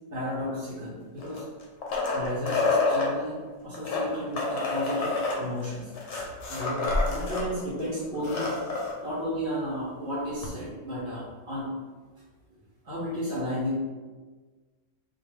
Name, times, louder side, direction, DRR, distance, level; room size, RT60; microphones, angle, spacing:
voice 1, 0.1-1.4 2.1-5.9 6.5-8.8 9.0-11.7 12.8-13.8, equal, 55° right, -10 dB, 0.8 m, -33 dB
sound 1, 1.2-3.1 3.7-7.5 7.8-7.9 8.1-8.9 10.4-10.5, left 3 dB, 70° left, 0.9 m, -28 dB
2.4 x 2.2 x 3.0 m, 1.4 s
omnidirectional pair, 1.3 m